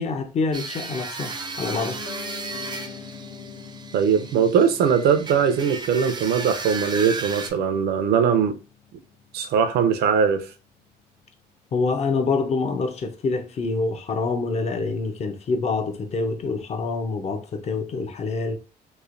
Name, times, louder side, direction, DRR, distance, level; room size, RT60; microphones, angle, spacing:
voice 1, 0.0-1.3 1.6-2.0 11.7-18.6, left 4 dB, 40° left, 0.6 m, -26 dB
sound 1, 0.5-7.5, right 4 dB, 25° right, 0.5 m, -35 dB
Piano, 1.3-11.3 11.6-11.7, left 5 dB, 70° left, 0.9 m, -43 dB
voice 2, 3.9-8.5 9.3-10.5, right 7 dB, 70° right, 0.5 m, -20 dB
3.1 x 2.1 x 2.5 m
cardioid pair, 110°, 17 cm